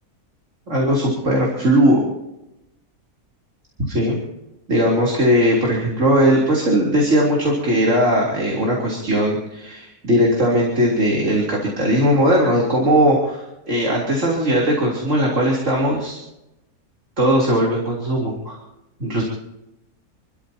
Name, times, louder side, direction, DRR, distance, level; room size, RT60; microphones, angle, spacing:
voice 1, 0.7-2.0 3.8-4.2 4.7-16.2 17.2-18.6 19.0-19.2, equal, 50° right, -3 dB, 3.9 m, -18 dB
30.0 x 13.0 x 2.9 m, 0.90 s
omnidirectional pair, 1.6 m